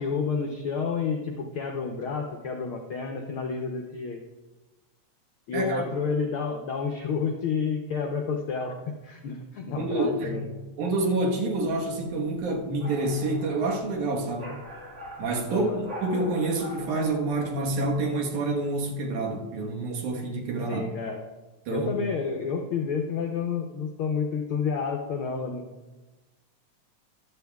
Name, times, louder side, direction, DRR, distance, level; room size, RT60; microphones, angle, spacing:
voice 1, 0.0-4.2 5.5-8.7 9.0-10.5 15.5-15.8 20.7-21.2 21.7-25.7, left 5 dB, 75° left, 2 dB, 1.2 m, -30 dB
voice 2, 5.5-5.9 9.8-10.4 10.8-14.5 15.2-20.9 21.7-21.9, right 2 dB, 85° right, 1 dB, 2.8 m, -28 dB
sound 1, 11.5-18.1, left 1 dB, 30° right, 1.8 m, -43 dB
14.5 x 11.5 x 2.3 m, 1.2 s
omnidirectional pair, 3.4 m